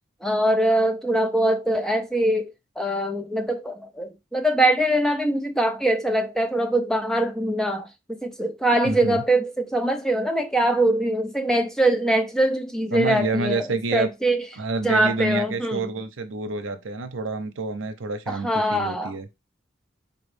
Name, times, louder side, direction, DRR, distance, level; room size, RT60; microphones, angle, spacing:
voice 1, 0.2-14.5 14.8-15.9 18.3-19.1, right 1 dB, 5° left, 0.5 m, -23 dB
voice 2, 8.8-9.2 12.9-14.1 14.6-19.3, right 3 dB, 90° right, 0.7 m, -28 dB
4.2 x 3.0 x 3.4 m
head